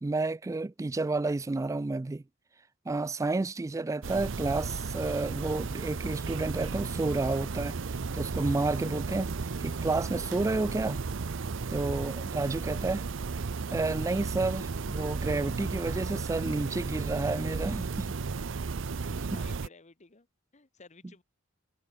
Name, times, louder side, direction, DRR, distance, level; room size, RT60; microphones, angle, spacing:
voice 1, 0.0-2.2 2.9-7.8 8.1-9.3 9.6-11.0 11.7-13.0 13.7-18.2 19.3-19.4, right 3 dB, 15° right, 0.3 m, -30 dB
voice 2, 3.7-4.0 19.1-20.3 20.5-21.2, left 3 dB, 35° left, 1.2 m, -55 dB
sound 1, 4.0-19.7, right 4 dB, 70° right, 0.6 m, -34 dB
head